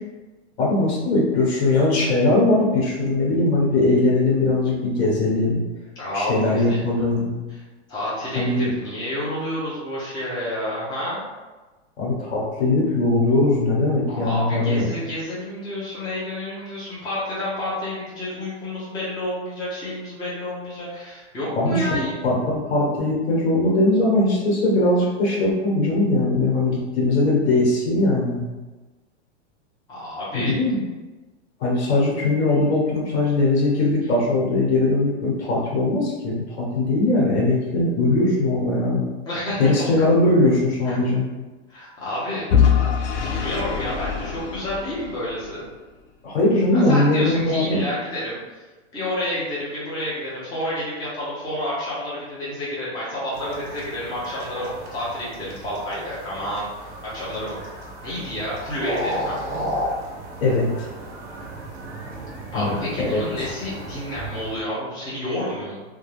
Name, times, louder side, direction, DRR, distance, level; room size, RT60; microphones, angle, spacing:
voice 1, 0.6-5.6 6.1-7.3 8.3-8.7 12.0-14.9 21.5-21.9 22.2-28.5 30.3-30.8 31.6-39.0 39.6-41.3 46.2-47.8 60.4-60.9 62.5-63.5, left 2 dB, 70° left, -3 dB, 1.1 m, -20 dB
voice 2, 6.0-6.8 7.5-7.6 7.9-11.2 14.1-22.1 29.9-30.5 39.3-39.9 40.8-41.0 41.7-42.4 43.1-45.6 46.7-48.6 48.9-57.6 58.0-59.4 62.5-65.8, left 1 dB, 10° left, -9 dB, 0.6 m, -30 dB
Vehicle / Engine, 42.5-45.5, left 7 dB, 90° left, 0.5 m, -22 dB
sound 1, 53.3-64.6, equal, 35° right, 0.6 m, -34 dB
2.4 x 2.2 x 3.1 m, 1.2 s
supercardioid pair, 145°, 34 cm